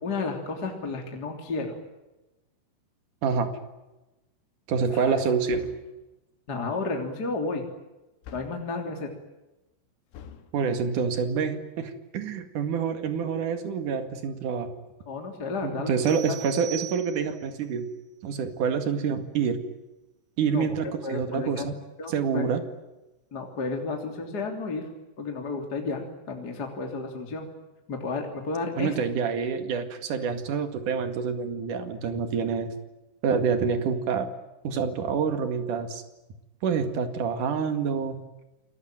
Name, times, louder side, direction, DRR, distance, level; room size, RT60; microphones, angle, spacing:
voice 1, 0.0-1.7 4.9-5.2 6.5-7.6 8.3-9.1 15.1-15.9 20.5-20.7 21.0-21.7 22.0-22.5 23.3-24.9 25.2-27.5 27.9-29.0, left 3 dB, 25° left, 3 dB, 2.9 m, -32 dB
voice 2, 3.2-3.5 4.7-5.7 10.5-14.7 15.6-17.9 18.2-19.6 20.4-21.7 22.1-22.6 28.8-32.7 33.2-34.3 34.6-36.0 36.6-38.2, right 6 dB, 50° right, 8 dB, 2.9 m, -27 dB
sound 1, 5.5-6.0 8.2-8.7 10.1-10.5, left 8 dB, 80° left, 4.3 m, -45 dB
sound 2, 16.0-17.6, right 16 dB, 75° right, 3.4 m, -40 dB
29.5 x 20.5 x 9.1 m, 1.0 s
omnidirectional pair, 5.7 m